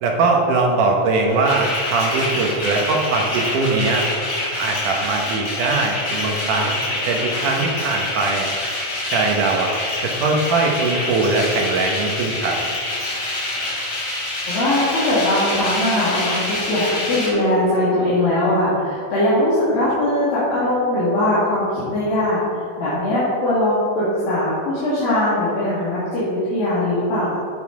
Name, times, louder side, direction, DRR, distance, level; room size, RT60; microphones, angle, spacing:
voice 1, 0.0-4.1 4.6-6.8 7.1-8.5 9.1-9.7 10.0-12.6, right 3 dB, 70° right, 1 dB, 2.3 m, -21 dB
sound 1, 1.3-17.3, left 1 dB, 40° left, 3.2 m, -26 dB
voice 2, 14.5-27.4, left 1 dB, 75° left, -10 dB, 4.0 m, -20 dB
9.5 x 7.8 x 4.7 m, 2.3 s
omnidirectional pair, 4.3 m